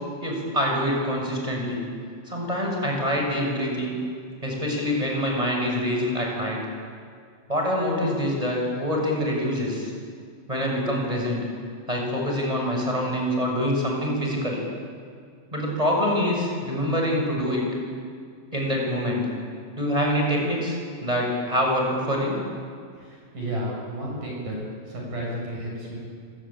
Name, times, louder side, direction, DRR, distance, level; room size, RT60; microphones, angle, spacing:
voice 1, 0.2-1.8 2.3-4.0 4.4-6.6 7.5-9.9 10.5-11.4 11.9-14.6 15.5-17.7 18.5-19.2 19.8-22.4, equal, 5° right, -1 dB, 6.5 m, -25 dB
voice 2, 22.9-24.6 24.9-26.0, right 1 dB, 40° right, -3 dB, 8.6 m, -32 dB
26.5 x 23.0 x 9.0 m, 2.2 s
omnidirectional pair, 5.6 m